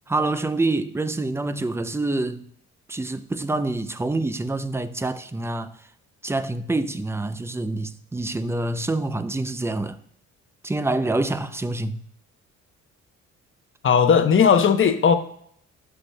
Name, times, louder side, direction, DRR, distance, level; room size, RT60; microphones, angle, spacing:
voice 1, 0.1-2.5 2.9-5.7 6.2-10.0 10.6-12.0, right 2 dB, 10° right, 0.5 m, -26 dB
voice 2, 13.8-15.1, left 6 dB, 40° left, 0.9 m, -17 dB
15.5 x 5.9 x 2.3 m
cardioid pair, 90°, 30 cm